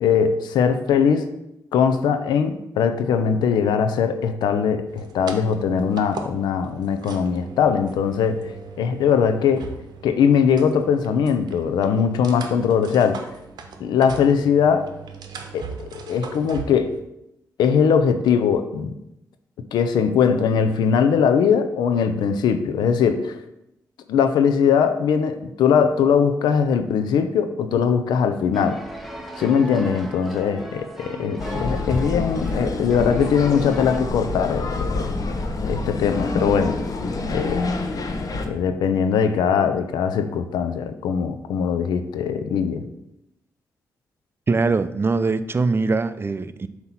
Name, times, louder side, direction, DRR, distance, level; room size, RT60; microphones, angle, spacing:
voice 1, 0.0-1.3 1.7-8.5 8.8-9.7 10.0-13.3 13.8-14.9 15.5-15.6 15.9-16.9 17.6-18.9 19.7-23.4 24.1-28.8 29.4-35.1 35.6-36.8 37.3-37.6 38.5-42.8, left 7 dB, 90° left, 9 dB, 0.5 m, -20 dB
sound 1, 4.9-17.0, right 5 dB, 75° right, 0.8 m, -39 dB
sound 2, 28.5-34.0, equal, ahead, 1.0 m, -37 dB
sound 3, 31.4-38.5, left 3 dB, 55° left, 0.9 m, -27 dB
voice 2, 44.5-46.7, right 3 dB, 35° right, 13 dB, 0.5 m, -22 dB
7.7 x 2.9 x 5.7 m, 0.85 s
cardioid pair, 55°, 7 cm